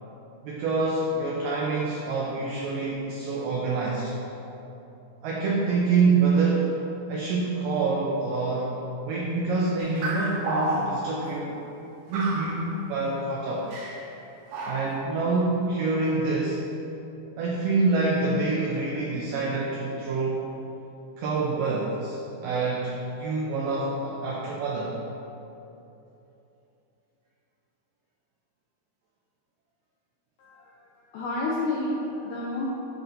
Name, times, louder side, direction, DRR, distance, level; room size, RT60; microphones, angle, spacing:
voice 1, 0.4-4.1 5.2-6.8 7.1-11.6 12.1-13.7 14.7-16.6 17.4-20.5 21.2-25.0, right 3 dB, 85° right, -3 dB, 1.9 m, -26 dB
sound 1, 9.8-11.2 12.1-12.7 13.7-14.1 14.5-15.0, right 2 dB, 65° right, 2.4 m, -31 dB
voice 2, 30.4-32.7, left 2 dB, 85° left, -5 dB, 1.8 m, -30 dB
11.0 x 5.7 x 2.7 m, 2.9 s
omnidirectional pair, 4.8 m